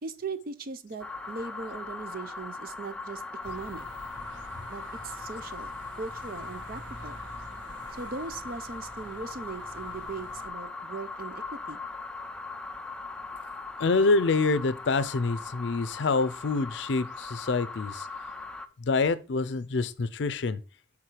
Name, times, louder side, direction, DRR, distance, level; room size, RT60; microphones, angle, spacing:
voice 1, 0.0-3.8 4.7-5.7 6.0-7.2 8.0-11.8, right 4 dB, 50° right, 0.6 m, -39 dB
sound 1, 1.0-18.7, left 3 dB, 5° left, 0.4 m, -40 dB
sound 2, 3.4-10.5, equal, 80° right, 1.4 m, -47 dB
voice 2, 13.8-18.1 18.8-20.6, left 3 dB, 70° left, 0.5 m, -26 dB
6.5 x 3.6 x 4.5 m
head